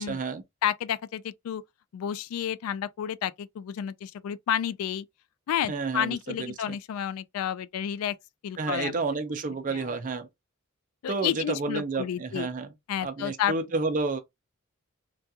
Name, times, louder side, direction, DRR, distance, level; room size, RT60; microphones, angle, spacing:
voice 1, 0.0-0.4 5.7-6.8 8.6-10.3 11.1-12.7 13.0-14.2, right 3 dB, 40° right, 0.5 m, -30 dB
voice 2, 0.6-1.6 1.9-5.1 5.5-8.1 8.4-9.0 9.7-9.9 11.0-12.5 12.9-13.5, left 9 dB, 80° left, 0.3 m, -30 dB
2.3 x 2.3 x 2.7 m
head